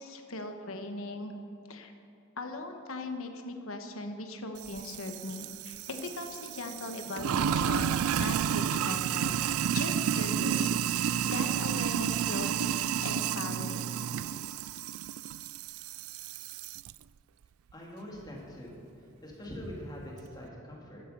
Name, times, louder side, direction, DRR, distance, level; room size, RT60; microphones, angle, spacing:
voice 1, 0.0-1.3 1.7-1.9 2.4-13.9 14.2-14.3, left 2 dB, 80° left, 5 dB, 1.2 m, -40 dB
Sink (filling or washing), 4.6-16.9, right 8 dB, 85° right, 0.3 m, -31 dB
voice 2, 17.7-21.0, equal, 20° left, -3 dB, 2.8 m, -43 dB
15.0 x 12.0 x 5.2 m, 2.7 s
head